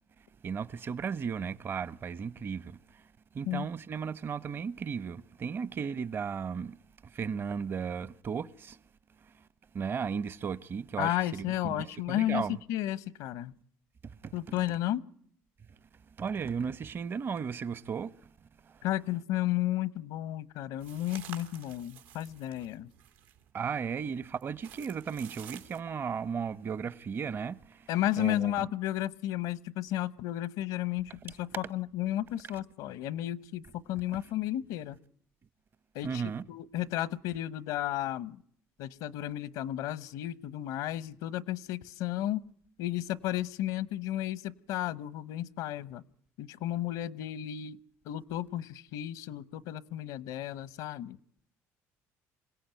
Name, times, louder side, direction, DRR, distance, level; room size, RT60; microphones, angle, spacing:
voice 1, 0.2-8.8 9.2-9.5 9.7-12.6 14.0-14.3 16.2-18.3 18.6-18.8 23.5-27.9 28.2-28.5 36.0-36.4, right 6 dB, 40° right, 0.9 m, -35 dB
voice 2, 11.0-12.4 12.7-13.5 14.3-15.1 18.8-22.9 27.9-35.0 35.9-36.2 36.5-38.4 38.8-42.4 42.8-46.0 46.4-47.8 48.1-51.2, left 13 dB, 80° left, 0.9 m, -33 dB
sound 1, 20.8-23.5 24.1-25.8, right 9 dB, 90° right, 2.8 m, -50 dB
26.5 x 17.0 x 9.2 m
cardioid pair, 100°, 6 cm